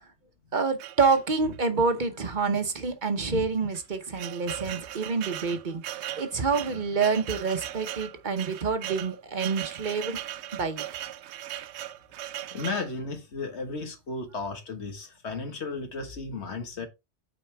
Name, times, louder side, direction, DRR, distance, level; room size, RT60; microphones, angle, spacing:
voice 1, 0.5-10.8, right 4 dB, 45° right, 1.0 m, -27 dB
sound 1, 0.8-1.7 2.4-2.5 2.8-2.9 3.6-12.9, right 12 dB, 80° right, 0.8 m, -38 dB
voice 2, 12.5-16.9, left 3 dB, 85° left, 1.7 m, -34 dB
8.9 x 4.3 x 3.3 m
omnidirectional pair, 1.1 m